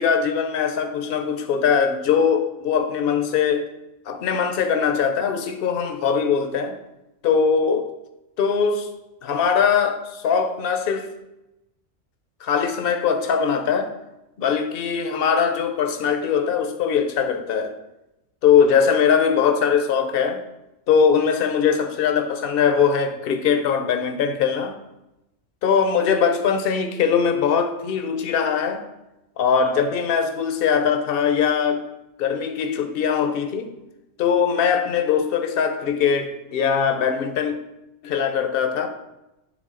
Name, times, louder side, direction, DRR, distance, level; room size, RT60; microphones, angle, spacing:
voice 1, 0.0-3.7 4.1-6.8 7.2-7.9 8.4-8.9 9.2-11.1 12.4-13.9 14.4-17.7 18.4-20.4 20.9-24.8 25.6-28.8 29.4-31.8 32.2-33.7 34.2-37.6 38.0-38.9, left 6 dB, 55° left, 0.8 m, -21 dB
9.5 x 3.7 x 3.7 m
omnidirectional pair, 1.3 m